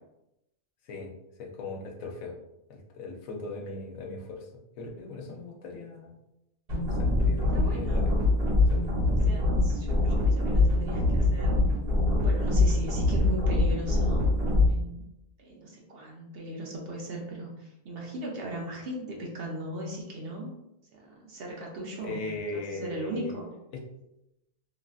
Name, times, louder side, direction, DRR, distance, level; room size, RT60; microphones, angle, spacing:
voice 1, 1.4-2.3 2.7-4.5 4.8-6.1 7.0-8.1 8.7-9.2 22.0-23.4 23.7-23.8, left 3 dB, 75° left, 0 dB, 1.0 m, -38 dB
sound 1, 6.7-14.7, left 2 dB, 45° right, 1.3 m, -24 dB
voice 2, 7.5-8.3 9.3-11.6 12.2-15.0 15.4-20.5 20.9-22.2 22.5-23.5, right 1 dB, 60° right, -2 dB, 0.6 m, -38 dB
3.1 x 2.5 x 2.3 m, 0.89 s
omnidirectional pair, 1.5 m